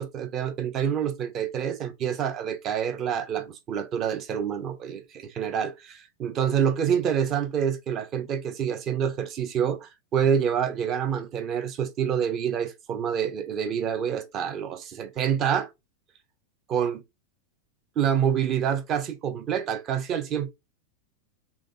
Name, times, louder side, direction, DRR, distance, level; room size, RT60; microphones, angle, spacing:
voice 1, 0.0-15.7 16.7-17.0 18.0-20.5, right 8 dB, 30° right, 0.8 m, -27 dB
3.8 x 3.5 x 3.5 m
figure-of-eight pair, 90°, 0 cm